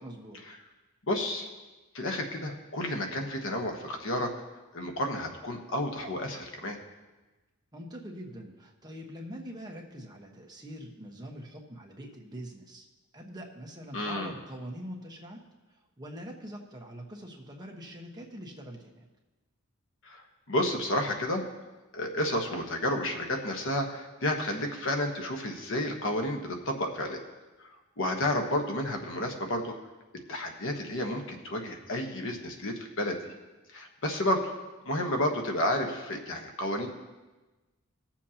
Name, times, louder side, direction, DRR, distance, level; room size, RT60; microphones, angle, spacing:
voice 1, 0.0-0.4 7.7-12.9 13.1-15.4 15.7-19.1, equal, 20° right, 0 dB, 1.2 m, -43 dB
voice 2, 1.1-1.5 1.9-4.3 4.7-6.8 13.9-14.3 20.0-21.4 21.9-27.2 27.6-27.7 28.0-29.8 30.3-33.3 33.7-34.5 34.8-36.9, left 1 dB, 65° left, 3 dB, 1.2 m, -31 dB
20.5 x 7.3 x 2.9 m, 1.2 s
head